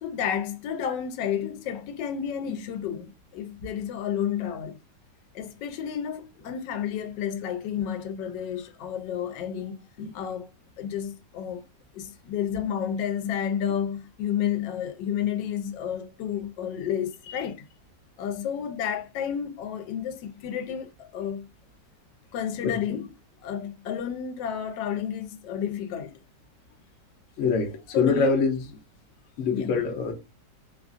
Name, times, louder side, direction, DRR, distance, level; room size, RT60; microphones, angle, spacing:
voice 1, 0.0-4.8 5.3-9.7 10.1-10.5 10.8-11.7 11.9-17.6 18.2-21.5 22.3-23.1 23.4-26.1 27.9-28.4 29.5-29.7, left 9 dB, 90° left, 1.2 m, -31 dB
voice 2, 27.4-28.6 29.4-30.1, left 5 dB, 60° left, 0.8 m, -25 dB
3.1 x 2.4 x 2.4 m
omnidirectional pair, 1.8 m